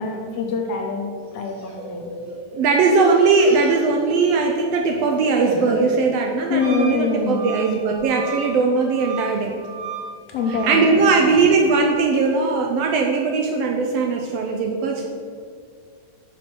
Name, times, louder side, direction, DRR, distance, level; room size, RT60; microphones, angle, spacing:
voice 1, 0.0-2.1 6.5-7.5 10.3-11.4, left 5 dB, 70° left, 2 dB, 1.7 m, -25 dB
sound 1, 1.3-2.4 2.6-4.5 4.8-6.0 6.4-6.8 7.1-7.3 8.2-8.6 9.1-9.5 10.3-12.5, equal, 15° right, 1.4 m, -34 dB
voice 2, 2.3-9.5 10.5-15.1, right 4 dB, 80° right, 2 dB, 1.4 m, -19 dB
Wind instrument woodwind instrument, 6.6-10.9, right 5 dB, 65° right, 3.2 m, -35 dB
6.2 x 5.2 x 6.1 m, 2.1 s
omnidirectional pair, 3.4 m